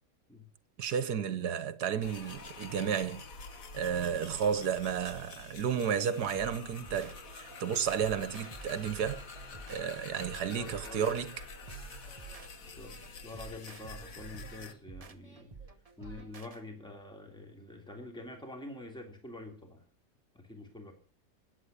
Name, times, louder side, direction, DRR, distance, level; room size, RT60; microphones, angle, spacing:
voice 1, 0.8-3.2 3.7-9.2 9.7-11.3, right 7 dB, 70° right, 1.6 m, -32 dB
sound 1, 2.0-14.7, left 4 dB, 55° left, 1.7 m, -48 dB
sound 2, 6.3-16.6, right 5 dB, 30° right, 0.8 m, -50 dB
voice 2, 10.5-11.1 12.7-15.5 16.0-19.8 20.3-20.9, left 2 dB, 5° left, 3.0 m, -46 dB
Singing, 10.8-16.5, equal, 90° left, 7.5 m, -62 dB
20.0 x 8.9 x 6.8 m
omnidirectional pair, 1.8 m